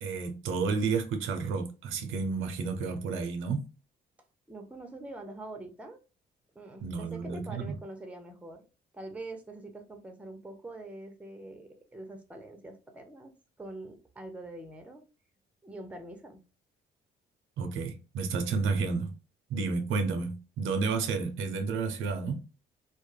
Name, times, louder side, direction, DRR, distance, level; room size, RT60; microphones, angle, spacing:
voice 1, 0.0-3.6 6.8-7.7 17.6-19.1 19.5-22.4, right 4 dB, 85° right, 0.5 m, -31 dB
voice 2, 4.5-6.0 6.6-8.6 8.9-13.3 13.6-15.0 15.6-16.4, right 2 dB, 5° right, 0.6 m, -44 dB
2.2 x 2.0 x 3.1 m
cardioid pair, 90°, 20 cm